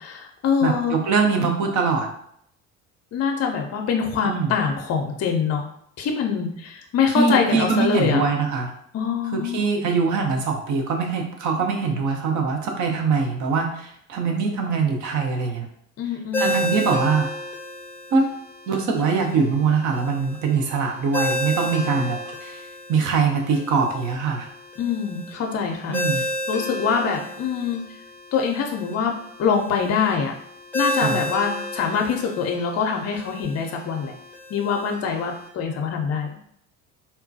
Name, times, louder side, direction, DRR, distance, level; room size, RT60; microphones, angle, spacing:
voice 1, 0.0-1.0 3.1-5.7 6.0-8.3 8.9-9.7 16.0-16.5 24.8-26.0 26.5-27.8 28.3-29.1 29.4-30.3 30.7-34.1 34.5-36.3, left 6 dB, 40° left, 2 dB, 0.6 m, -24 dB
voice 2, 0.6-2.1 4.2-4.5 7.1-8.7 9.3-15.7 16.4-17.3 18.1-18.3 18.7-22.6 22.9-24.5 25.9-26.2 31.0-31.2, right 5 dB, 45° right, 3 dB, 0.8 m, -22 dB
Ringtone, 16.3-35.5, left 1 dB, 5° left, 0.7 m, -32 dB
3.6 x 2.2 x 2.7 m, 0.69 s
hypercardioid pair, 60°, 40 cm